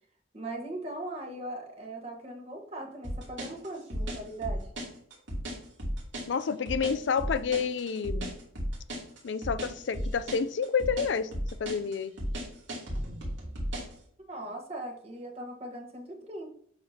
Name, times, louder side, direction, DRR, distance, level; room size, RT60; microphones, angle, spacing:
voice 1, 0.3-4.7 14.2-16.5, right 2 dB, 30° right, 1 dB, 1.4 m, -39 dB
sound 1, 3.0-14.0, equal, 80° right, 2.9 m, -34 dB
voice 2, 6.3-8.3 9.2-11.3 11.6-12.1, left 6 dB, 75° left, 14 dB, 0.4 m, -29 dB
8.0 x 6.7 x 2.8 m, 0.63 s
head